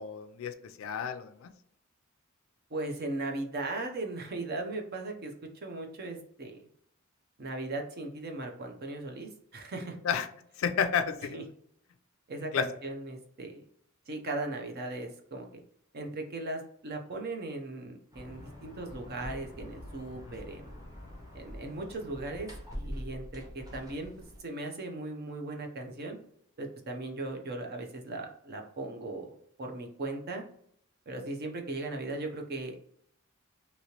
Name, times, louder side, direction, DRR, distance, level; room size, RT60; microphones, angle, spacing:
voice 1, 0.0-1.5 10.0-10.3 10.6-11.4 12.5-12.7, left 7 dB, 70° left, 9 dB, 0.4 m, -31 dB
voice 2, 2.7-6.7 7.4-10.0 11.3-11.4 12.3-13.6 14.1-15.6 15.9-20.8 21.3-22.5 22.7-24.1 24.4-26.2 26.6-30.4 31.1-32.8, right 2 dB, 50° right, 3 dB, 0.6 m, -38 dB
sound 1, 18.1-24.4, equal, 20° right, 0.9 m, -44 dB
3.0 x 2.8 x 2.9 m, 0.68 s
head